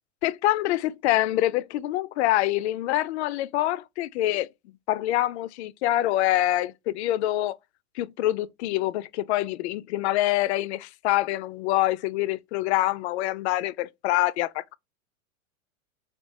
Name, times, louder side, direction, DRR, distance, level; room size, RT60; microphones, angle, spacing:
voice 1, 0.2-4.5 4.9-7.6 8.0-14.8, left 15 dB, 55° left, 0.5 m, -25 dB
3.6 x 2.4 x 3.9 m
hypercardioid pair, 120°, 42 cm